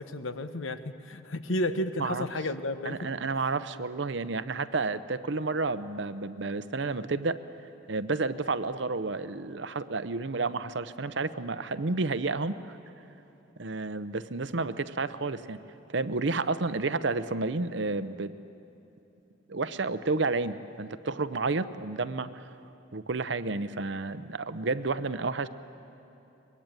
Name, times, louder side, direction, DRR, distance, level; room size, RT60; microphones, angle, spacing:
voice 1, 0.0-3.1, left 1 dB, 75° left, 10 dB, 1.1 m, -32 dB
voice 2, 2.8-7.4 7.9-12.8 13.6-15.6 15.9-18.3 19.5-22.5 22.9-25.5, right 3 dB, 60° right, 12 dB, 0.8 m, -31 dB
23.5 x 22.0 x 9.1 m, 2.9 s
head